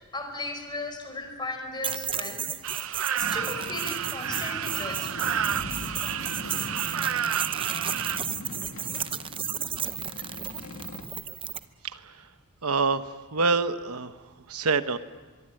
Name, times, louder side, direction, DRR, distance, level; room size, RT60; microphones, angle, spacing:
voice 1, 0.1-2.4 3.1-5.1, left 2 dB, 20° left, 5 dB, 4.6 m, -36 dB
sound 1, 1.8-11.7, right 8 dB, 25° right, 0.7 m, -33 dB
sound 2, 2.6-8.2, right 8 dB, 70° right, 0.7 m, -31 dB
Boat Water vehicle, 3.2-11.0, left 2 dB, 65° left, 2.5 m, -41 dB
voice 2, 11.8-12.2 12.6-14.2 14.5-15.0, right 4 dB, 85° right, 10 dB, 1.1 m, -26 dB
24.5 x 22.5 x 8.9 m, 1.4 s
head